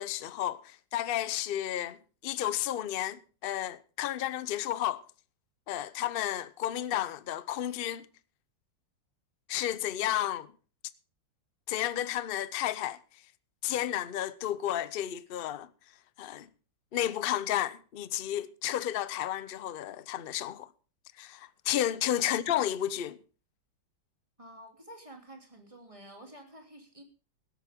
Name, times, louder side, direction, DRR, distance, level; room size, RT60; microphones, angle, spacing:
voice 1, 0.0-2.0 2.2-5.0 5.7-8.1 9.5-10.5 11.7-13.0 13.6-15.7 16.2-16.5 16.9-20.7 21.2-23.2, left 12 dB, 60° left, 0.5 m, -32 dB
voice 2, 22.2-22.6 24.4-27.0, right 1 dB, 15° right, 3.0 m, -50 dB
18.0 x 12.5 x 3.6 m
omnidirectional pair, 2.0 m